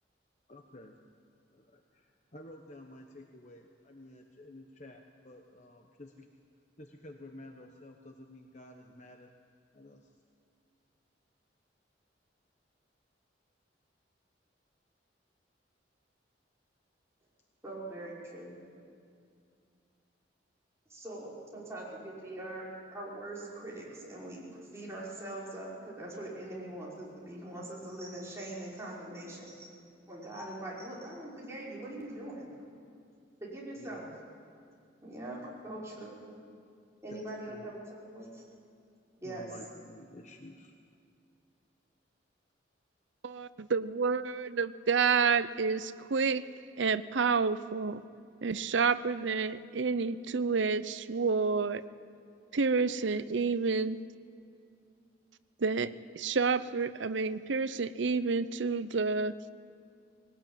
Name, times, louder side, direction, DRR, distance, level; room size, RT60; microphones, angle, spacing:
voice 1, 0.5-1.0 1.5-6.3 6.8-9.3 9.7-10.1 33.8-34.1 37.1-37.2 37.5-37.7 39.2-40.8, left 1 dB, 40° left, 3 dB, 1.1 m, -51 dB
voice 2, 17.6-18.6 20.9-29.7 30.1-32.5 33.4-34.1 35.0-36.2 37.0-37.8 38.0-38.4 39.2-39.5, right 1 dB, 15° right, -6 dB, 5.5 m, -42 dB
voice 3, 43.2-46.4 46.8-48.0 48.4-51.8 52.5-54.0 55.6-59.3, right 5 dB, 85° right, 14 dB, 0.7 m, -29 dB
21.0 x 19.0 x 9.1 m, 2.4 s
head